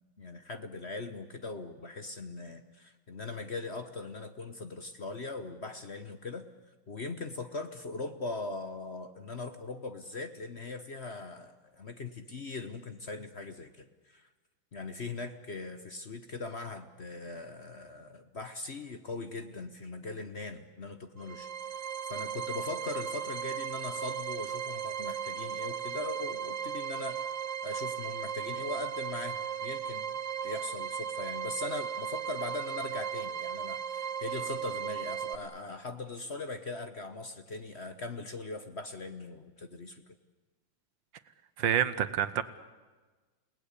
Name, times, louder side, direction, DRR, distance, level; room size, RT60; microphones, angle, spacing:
voice 1, 0.0-6.4 6.9-14.3 14.7-21.5 22.0-27.2 27.6-30.2 30.4-40.0, left 3 dB, 40° left, 8 dB, 1.2 m, -40 dB
sound 1, 21.2-35.3, right 8 dB, 45° right, 1.3 m, -36 dB
voice 2, 41.6-42.4, right 9 dB, 70° right, 13 dB, 1.7 m, -27 dB
29.5 x 18.5 x 8.4 m, 1.3 s
omnidirectional pair, 2.2 m